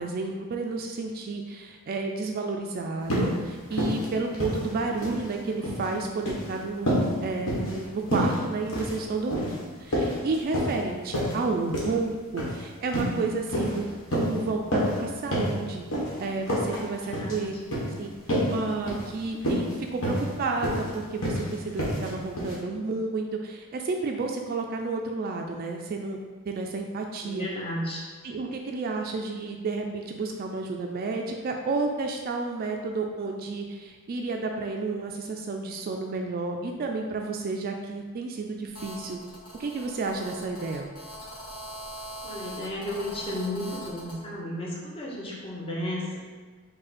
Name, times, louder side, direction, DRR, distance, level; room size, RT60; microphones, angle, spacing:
voice 1, 0.0-7.0 7.2-15.8 16.2-17.5 18.0-18.1 18.5-26.2 26.5-27.5 28.2-39.2 39.6-40.8, right 3 dB, 45° right, 3 dB, 0.3 m, -31 dB
sound 1, 3.1-3.3 3.7-4.0 4.3-5.2 5.5-5.8 6.2-6.5 6.9-7.1 7.5-7.8 8.1-8.4 8.7-9.0 9.3-9.6 9.9-10.8 11.1-11.3 11.7-11.9 12.4-12.6 12.9-13.2 13.5-13.8 14.1-14.3 14.7-15.0 15.3-15.5 15.9-16.1 16.5-16.8 17.1-17.3 17.7-17.9 18.3-18.6 18.9-19.0 19.4-19.7 20.0-20.3 20.6-20.9 21.2-21.4 21.8-22.1 22.4-22.5, equal, 65° left, 1.3 m, -27 dB
voice 2, 17.0-17.5 27.2-28.0 42.2-46.2, left 1 dB, 25° left, -4 dB, 0.8 m, -33 dB
Telephone, 38.7-44.2, equal, 85° left, 1.1 m, -42 dB
5.1 x 2.2 x 4.1 m, 1.4 s
head